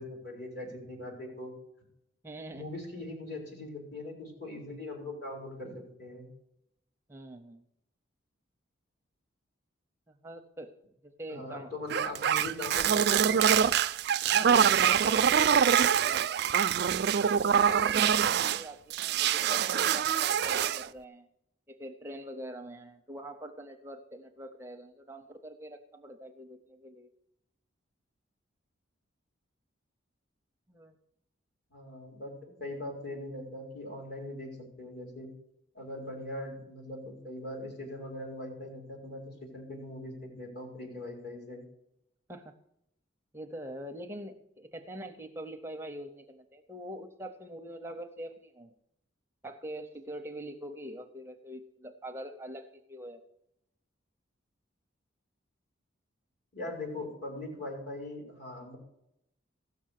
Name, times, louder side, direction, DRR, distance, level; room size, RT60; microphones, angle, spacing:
voice 1, 0.0-1.5 2.5-6.3 11.3-13.5 31.7-35.3 35.7-41.6 56.5-58.8, left 1 dB, 55° left, -1 dB, 4.4 m, -41 dB
voice 2, 2.2-2.6 7.1-7.7 10.1-10.7 11.0-11.7 14.2-16.2 16.8-21.3 21.7-27.1 30.7-30.9 42.3-42.5 43.3-48.7 49.4-53.2, right 1 dB, 10° right, 6 dB, 0.6 m, -44 dB
sound 1, 11.9-18.6 18.9-20.9, right 8 dB, 55° right, 0.3 m, -25 dB
16.0 x 6.6 x 6.5 m, 0.80 s
head